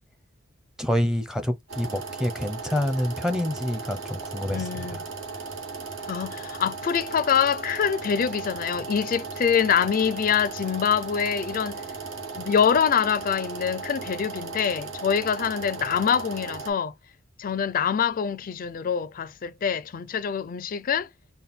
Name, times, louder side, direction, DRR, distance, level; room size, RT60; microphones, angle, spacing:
voice 1, 0.8-5.0, left 1 dB, 5° right, 0.6 m, -27 dB
sound 1, 1.7-16.7, right 4 dB, 75° right, 1.2 m, -36 dB
voice 2, 4.5-5.0 6.1-11.8 12.4-16.9 17.4-21.1, left 7 dB, 45° left, 0.4 m, -25 dB
4.2 x 2.2 x 3.6 m
head